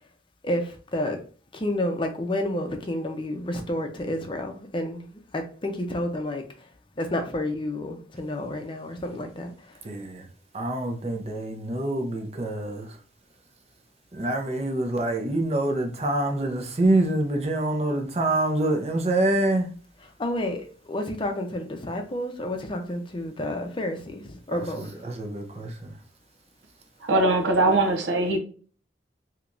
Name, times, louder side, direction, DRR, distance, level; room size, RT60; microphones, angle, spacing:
voice 1, 0.4-1.2 1.5-6.7 7.0-9.8 20.2-25.1, left 1 dB, 30° left, 0.6 m, -30 dB
voice 2, 9.8-10.3 10.5-13.0 14.1-19.7 24.5-25.9, right 1 dB, 35° right, 0.6 m, -26 dB
voice 3, 27.0-28.4, right 2 dB, 90° right, 0.7 m, -21 dB
3.3 x 2.9 x 2.5 m
head